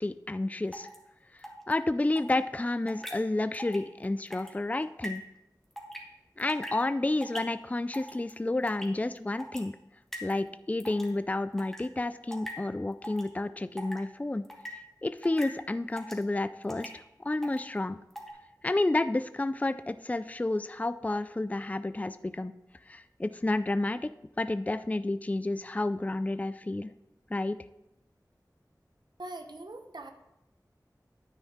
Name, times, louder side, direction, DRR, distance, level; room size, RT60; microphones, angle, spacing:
voice 1, 0.0-0.9 1.7-5.2 6.4-9.8 10.2-14.4 15.0-18.0 18.6-22.5 22.9-24.0 24.4-26.9 27.3-27.6, left 2 dB, 20° left, 12 dB, 0.3 m, -30 dB
sound 1, 0.7-1.0 1.4-1.7 2.2-2.3 2.9-3.1 3.5-3.8 4.0-4.5 5.0-5.2 5.8-6.0 6.4-6.8 7.2-7.4 7.9-8.3 8.7-8.9 9.4-9.6 10.1-10.4 10.8-11.1 11.6-11.8 12.3-12.5 13.0-13.3 13.8-14.0 14.4-14.7 15.2-15.5 16.0-16.2 16.7-16.9 17.4-17.6 18.1-18.3, equal, 5° left, 1.9 m, -40 dB
voice 2, 29.2-30.1, right 2 dB, 85° right, 6 dB, 0.8 m, -42 dB
9.9 x 9.1 x 3.6 m, 0.90 s
wide cardioid pair, 50°, 7 cm